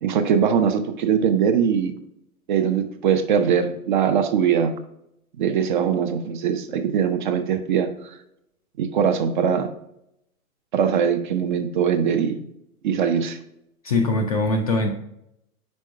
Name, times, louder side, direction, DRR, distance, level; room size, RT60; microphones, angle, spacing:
voice 1, 0.0-1.9 2.5-4.7 5.4-7.9 8.8-9.7 10.7-12.4 12.8-13.4, right 7 dB, 35° right, 8 dB, 0.5 m, -21 dB
voice 2, 13.8-14.9, left 2 dB, 30° left, 3 dB, 0.4 m, -21 dB
5.3 x 4.3 x 4.5 m, 0.79 s
figure-of-eight pair, 115°, 45 cm